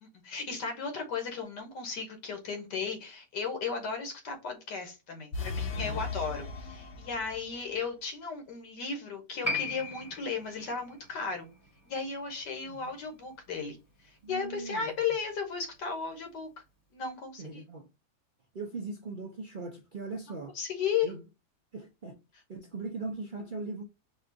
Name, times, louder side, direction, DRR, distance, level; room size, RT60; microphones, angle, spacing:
voice 1, 0.0-11.5 11.8-13.8 14.3-16.5 16.9-17.6 20.5-21.1, left 5 dB, 90° left, 1.7 m, -35 dB
sound 1, 5.3-7.6, left 4 dB, 55° left, 0.9 m, -37 dB
voice 2, 5.7-6.1 12.6-12.9 14.2-14.9 17.4-17.9 18.5-20.5 21.0-21.2 21.7-22.1 22.5-23.8, right 3 dB, 60° right, 0.5 m, -39 dB
Piano, 9.4-16.4 16.7-16.8, left 2 dB, 10° left, 0.8 m, -41 dB
4.2 x 2.4 x 3.8 m
omnidirectional pair, 1.8 m